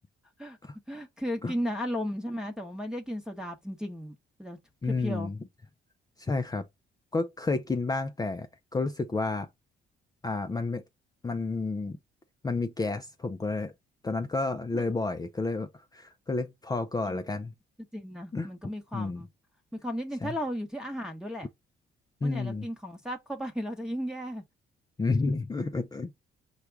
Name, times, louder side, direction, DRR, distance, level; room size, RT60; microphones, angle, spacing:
voice 1, 0.9-4.6 4.8-5.3 17.0-17.4 17.9-19.3 19.8-21.5 22.2-24.4, equal, 5° right, 1.0 m, -35 dB
voice 2, 4.8-5.4 6.2-6.7 7.1-9.5 10.2-10.8 11.2-12.0 12.4-13.7 14.0-17.5 18.3-18.5 18.9-19.2 20.2-20.4 22.2-22.7 25.0-26.1, left 3 dB, 20° left, 0.5 m, -30 dB
4.9 x 2.3 x 4.5 m
cardioid pair, 90°, 20 cm